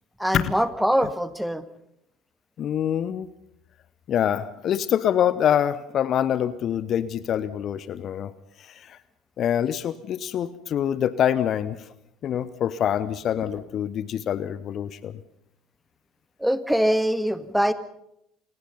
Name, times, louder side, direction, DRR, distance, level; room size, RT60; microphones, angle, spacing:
voice 1, 0.2-1.7 13.5-13.6 16.4-17.7, equal, ahead, 12 dB, 1.7 m, -23 dB
voice 2, 2.6-3.3 4.1-8.3 8.6-9.0 9.4-11.8 12.2-15.2, left 10 dB, 45° left, 17 dB, 0.9 m, -25 dB
29.0 x 19.0 x 5.5 m, 0.77 s
figure-of-eight pair, 65°, 0 cm